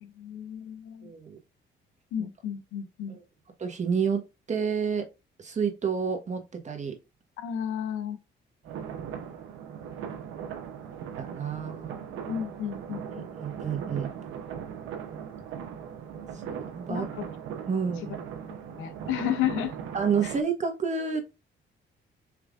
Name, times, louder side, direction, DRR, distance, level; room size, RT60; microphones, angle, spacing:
voice 1, 0.0-1.1 2.1-3.2 7.4-8.2 12.3-13.3 16.9-17.3 17.7-18.2 18.8-19.7 20.2-20.4, left 10 dB, 90° left, 0.6 m, -33 dB
voice 2, 1.0-1.4 2.2-2.3 3.1-3.2 3.6-4.2 4.5-5.1 5.4-6.9 9.6-9.9 11.2-11.9 13.1-14.1 16.5-17.1 17.7-18.2 19.9-21.2, right 6 dB, 35° right, 1.3 m, -29 dB
sound 1, 8.6-20.4, right 8 dB, 85° right, 0.9 m, -39 dB
4.8 x 3.3 x 2.5 m
cardioid pair, 90°, 20 cm